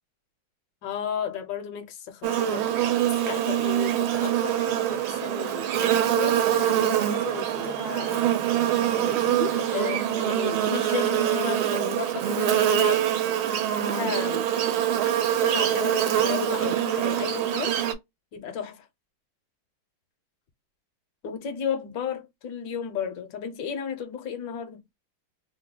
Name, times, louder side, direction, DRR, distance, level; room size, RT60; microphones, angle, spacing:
voice 1, 0.8-8.3 8.9-13.1 13.8-14.5 15.4-17.8 18.3-18.9 21.2-24.8, left 7 dB, 70° left, 1.2 m, -33 dB
Buzz, 2.2-17.9, right 11 dB, 85° right, 1.4 m, -24 dB
3.4 x 2.2 x 3.6 m
omnidirectional pair, 2.3 m